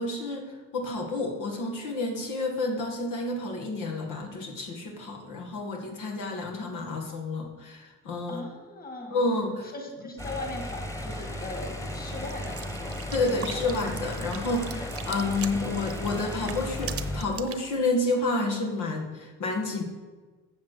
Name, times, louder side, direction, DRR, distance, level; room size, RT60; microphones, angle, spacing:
voice 1, 0.0-8.4 9.1-9.7 13.1-19.8, left 2 dB, 85° left, 1 dB, 1.8 m, -30 dB
voice 2, 8.3-9.2 9.7-12.9 13.2-13.7, left 2 dB, 30° left, 3 dB, 2.3 m, -39 dB
sound 1, 10.2-17.2, left 1 dB, 10° left, 1.3 m, -35 dB
sound 2, 12.3-17.6, right 8 dB, 50° right, 0.9 m, -41 dB
7.3 x 7.2 x 7.8 m, 1.3 s
cardioid pair, 90°, 30 cm